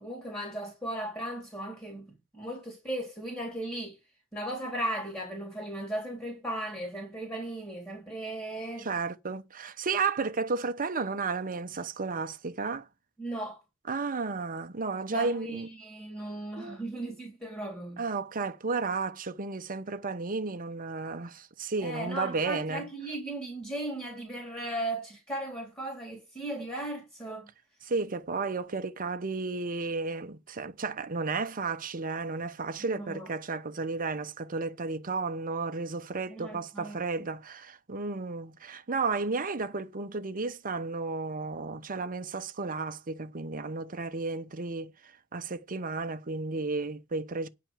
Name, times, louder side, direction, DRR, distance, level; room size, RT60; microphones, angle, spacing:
voice 1, 0.0-4.0 4.3-8.9 13.2-13.6 15.1-18.0 21.8-27.5 32.8-33.3 36.3-37.0, right 1 dB, 10° left, 3.7 m, -37 dB
voice 2, 8.8-12.9 13.9-15.7 16.6-16.8 18.0-22.9 27.8-47.5, right 4 dB, 40° right, 0.9 m, -33 dB
10.0 x 5.3 x 7.3 m
head